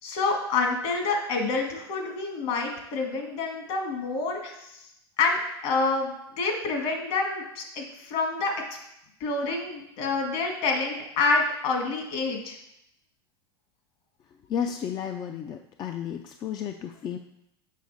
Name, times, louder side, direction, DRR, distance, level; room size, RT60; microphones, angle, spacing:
voice 1, 0.0-4.7 5.2-8.5 9.2-12.6, left 3 dB, 60° left, 2 dB, 1.9 m, -27 dB
voice 2, 14.5-17.2, left 8 dB, 30° left, 6 dB, 0.5 m, -32 dB
6.5 x 5.8 x 4.1 m, 0.81 s
hypercardioid pair, 105°, 14 cm